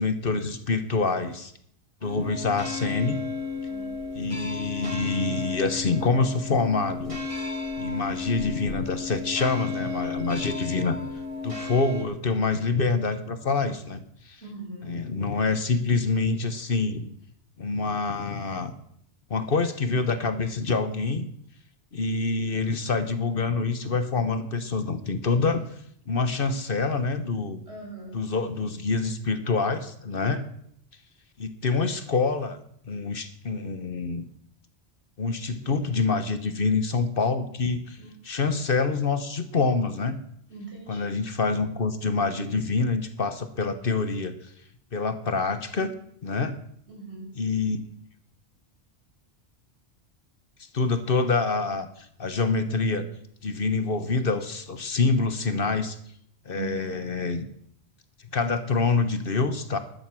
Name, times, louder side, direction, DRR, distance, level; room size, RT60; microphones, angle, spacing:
voice 1, 0.0-1.5 2.0-3.2 4.1-7.2 7.8-11.0 11.4-14.4 14.8-17.1 17.6-18.7 19.3-21.3 21.9-25.6 26.1-27.6 28.1-30.4 31.4-32.6 32.8-34.3 35.2-38.0 38.2-40.2 40.9-44.5 44.9-45.9 46.2-46.5 47.4-47.8 50.7-53.0 53.4-56.0 56.4-57.4 58.3-59.8, left 4 dB, 55° left, 10 dB, 1.3 m, -26 dB
sound 1, 2.0-12.0, left 4 dB, 30° right, 2.2 m, -33 dB
voice 2, 3.7-4.2 14.4-14.9 27.7-28.2 38.0-38.2 40.5-41.1 46.9-47.3 56.5-57.4, right 3 dB, 75° right, -2 dB, 6.2 m, -41 dB
12.5 x 11.0 x 6.2 m, 0.68 s
omnidirectional pair, 1.1 m